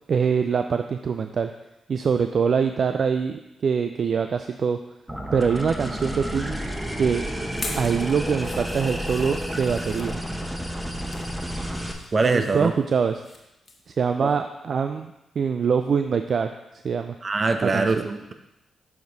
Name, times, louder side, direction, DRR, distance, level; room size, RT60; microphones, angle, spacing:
voice 1, 0.1-1.5 1.9-4.8 5.3-6.6 7.0-7.2 7.8-10.2 12.2-13.2 13.9-16.5 16.8-17.1 17.6-18.1, right 6 dB, 60° right, 7 dB, 0.3 m, -24 dB
sound 1, 5.1-11.9, equal, 10° right, 1.1 m, -30 dB
sound 2, 7.5-10.1 10.7-11.3 11.7-13.4 13.7-13.9 14.3-14.4, left 2 dB, 45° left, 1.3 m, -40 dB
voice 2, 12.1-12.7 14.2-14.3 17.2-18.3, right 3 dB, 45° right, 7 dB, 0.7 m, -23 dB
7.1 x 5.0 x 3.9 m, 0.92 s
supercardioid pair, 45°, 0 cm